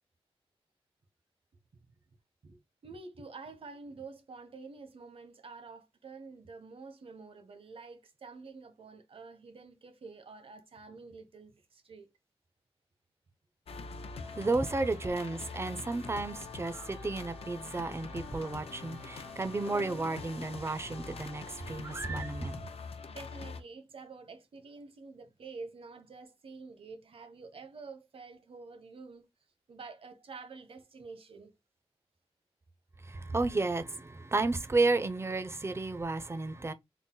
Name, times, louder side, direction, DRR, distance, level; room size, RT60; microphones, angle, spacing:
voice 1, 2.4-12.1 23.1-29.2 29.7-31.5, right 4 dB, 65° right, 0.9 m, -48 dB
sound 1, 13.7-23.6, left 4 dB, 75° left, 0.5 m, -44 dB
voice 2, 14.3-22.6 33.0-36.7, right 3 dB, 25° right, 0.5 m, -32 dB
3.9 x 2.0 x 3.8 m
wide cardioid pair, 75°, 10 cm